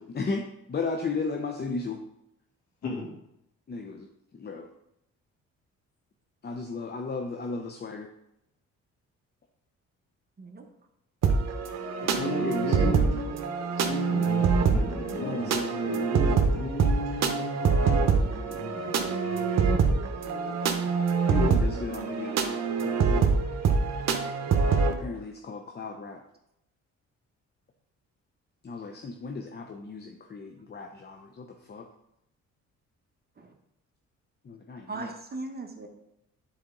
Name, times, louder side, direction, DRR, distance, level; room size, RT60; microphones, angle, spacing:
voice 1, 0.1-2.0 3.7-4.1 4.3-4.7 6.4-8.1 12.1-13.1 15.2-16.2 19.7-20.6 20.8-20.9 21.3-23.0 24.9-26.2 28.6-31.9 34.4-35.1, left 4 dB, 35° left, 4 dB, 0.7 m, -35 dB
sound 1, 11.2-24.9, right 5 dB, 60° right, 1.0 m, -25 dB
voice 2, 12.0-13.4 13.9-15.5 15.9-19.5, left 1 dB, 65° left, -2 dB, 2.8 m, -35 dB
voice 3, 34.9-35.9, right 3 dB, 30° right, 4 dB, 1.1 m, -38 dB
9.7 x 4.3 x 3.9 m, 0.82 s
cardioid pair, 90°, 30 cm